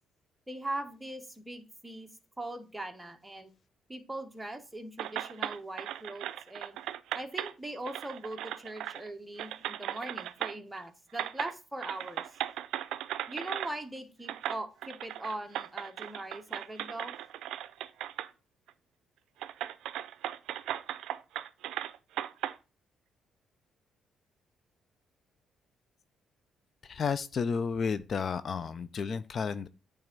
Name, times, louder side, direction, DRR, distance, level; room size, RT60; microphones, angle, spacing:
voice 1, 0.5-2.1 2.4-3.5 3.9-6.8 7.1-12.2 13.3-17.2, right 1 dB, 10° right, 5 dB, 1.2 m, -40 dB
sound 1, 5.0-7.5 7.8-9.1 9.4-10.8 11.1-11.5 11.8-13.7 14.3-18.3 18.7-18.8 19.4-22.6, right 12 dB, 85° right, 0.4 m, -37 dB
voice 2, 26.9-29.7, left 5 dB, 50° left, 14 dB, 0.4 m, -32 dB
8.8 x 3.5 x 5.2 m, 0.32 s
cardioid pair, 90°, 0 cm